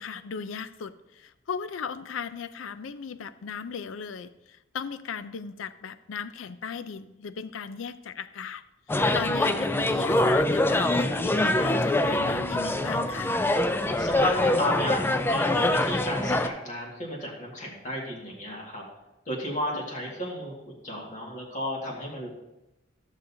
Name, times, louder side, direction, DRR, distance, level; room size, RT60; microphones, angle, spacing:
voice 1, 0.0-8.6 8.9-13.4 19.7-19.9, left 6 dB, 85° left, 13 dB, 0.4 m, -37 dB
sound 1, 8.9-16.5, left 1 dB, 10° left, 0.3 m, -24 dB
voice 2, 14.0-18.8 19.3-20.5 20.8-22.3, equal, 40° left, -3 dB, 1.9 m, -33 dB
13.5 x 6.5 x 2.7 m, 0.95 s
head